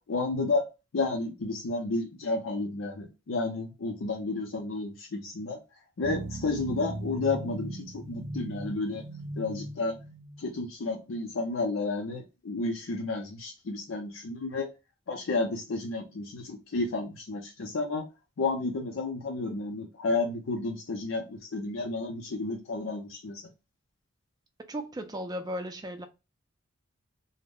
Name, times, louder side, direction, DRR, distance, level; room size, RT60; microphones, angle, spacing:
voice 1, 0.1-0.6 0.9-5.6 6.0-9.0 9.4-10.0 10.4-14.7 15.1-18.0 18.4-23.5, left 3 dB, 75° left, 0.5 m, -31 dB
sound 1, 6.0-10.6, right 1 dB, 65° right, 0.6 m, -39 dB
voice 2, 24.7-26.1, equal, 20° right, 0.4 m, -35 dB
2.0 x 2.0 x 3.5 m
head